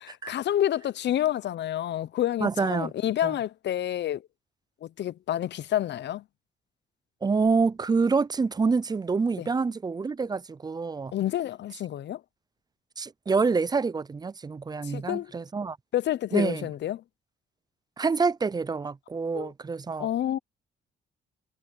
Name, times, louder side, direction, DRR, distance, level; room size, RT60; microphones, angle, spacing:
voice 1, 0.3-4.2 4.8-6.2 9.4-9.5 11.1-12.2 14.8-15.3 15.9-17.0 19.3-19.5 20.0-20.4, left 12 dB, 60° left, 0.7 m, -28 dB
voice 2, 2.4-2.9 3.2-3.3 7.2-11.1 13.0-15.8 16.3-16.7 18.0-20.1, right 4 dB, 20° right, 0.4 m, -27 dB
cardioid pair, 90°, 20 cm